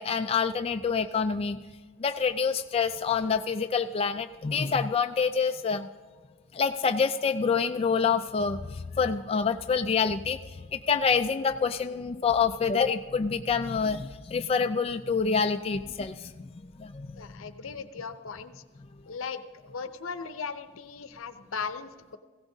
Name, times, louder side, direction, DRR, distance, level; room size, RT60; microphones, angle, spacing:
voice 1, 0.0-1.6 2.0-5.9 6.5-17.5, left 5 dB, 30° left, 7 dB, 0.3 m, -27 dB
voice 2, 17.1-18.6 19.1-22.2, left 5 dB, 90° left, 11 dB, 0.7 m, -38 dB
17.5 x 16.0 x 2.7 m, 1.4 s
head